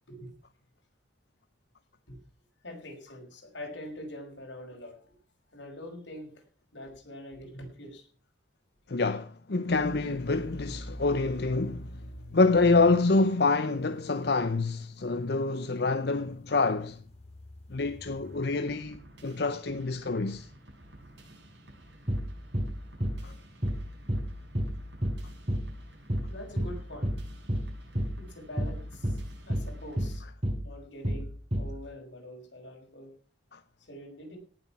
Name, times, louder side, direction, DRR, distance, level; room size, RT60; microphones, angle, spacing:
voice 1, 2.6-5.2 5.5-6.4 6.7-8.1 26.3-27.1 28.2-30.3 30.6-33.1 33.8-34.4, left 1 dB, 90° left, 6.0 m, -44 dB
voice 2, 8.9-17.0 17.7-20.5 23.2-23.3 33.5-33.6, left 3 dB, 60° left, 0.8 m, -27 dB
sound 1, 9.7-18.6, left 1 dB, 35° left, 3.6 m, -46 dB
sound 2, 18.2-30.2, right 1 dB, 75° right, 7.0 m, -52 dB
sound 3, 22.1-22.3 22.5-22.7 23.0-23.2 23.6-23.8 24.1-24.3 24.6-24.8 25.0-25.2 25.5-25.7 26.1-26.3 26.6-26.8 27.0-27.2 27.5-27.7 28.0-28.2 28.6-28.8 29.0-29.2 29.5-29.7 30.0-30.2 30.4-30.6 31.0-31.2 31.5-31.7, equal, 35° right, 4.6 m, -29 dB
18.0 x 7.8 x 5.9 m
head